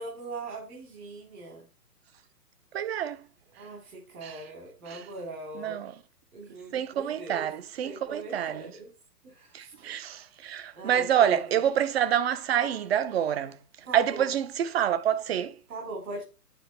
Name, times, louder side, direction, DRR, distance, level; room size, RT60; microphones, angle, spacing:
voice 1, 0.0-1.6 3.6-5.8 6.3-7.5 7.8-8.9 9.2-9.7 10.7-11.4 13.9-14.0 15.7-16.2, right 2 dB, 60° right, 4.0 m, -40 dB
voice 2, 2.7-3.2 4.2-4.4 4.9-5.0 5.5-5.9 6.7-8.7 9.5-13.6 13.9-15.5, right 10 dB, 40° right, 0.7 m, -27 dB
9.3 x 4.6 x 4.3 m
hypercardioid pair, 130°, 48 cm